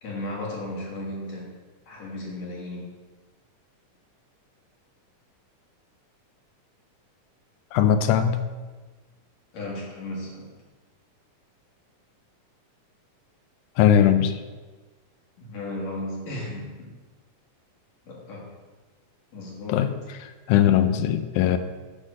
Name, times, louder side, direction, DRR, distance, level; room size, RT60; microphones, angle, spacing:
voice 1, 0.0-1.5 1.9-2.9 9.5-10.5 15.4-16.9 18.1-18.5 19.3-20.0, left 1 dB, 60° left, -4 dB, 3.0 m, -35 dB
voice 2, 7.7-8.4 13.8-14.4 19.7-19.9 20.5-21.6, left 9 dB, 90° left, 10 dB, 2.1 m, -19 dB
9.8 x 4.0 x 6.4 m, 1.3 s
omnidirectional pair, 3.5 m